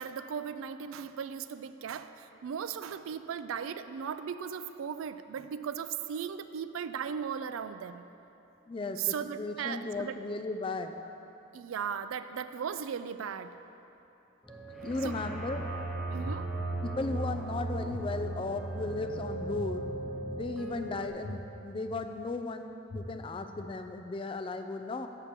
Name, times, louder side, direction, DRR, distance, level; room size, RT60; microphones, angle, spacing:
voice 1, 0.0-8.0 9.0-10.2 11.5-13.5 15.0-15.2 16.1-16.5 20.8-20.9, right 7 dB, 85° right, 11 dB, 0.4 m, -37 dB
voice 2, 8.7-10.9 14.8-15.7 16.8-19.9 20.3-25.1, left 3 dB, 25° left, 7 dB, 0.3 m, -36 dB
sound 1, 14.4-21.1, right 2 dB, ahead, 0.9 m, -37 dB
sound 2, 16.2-16.3 16.9-17.0 17.9-18.0 18.5-18.6 19.6-19.7 20.2-20.3 21.2-21.3 21.9-22.0 22.9-23.0 23.5-23.6, left 2 dB, 70° left, 2.0 m, -43 dB
6.8 x 6.0 x 7.3 m, 3.0 s
head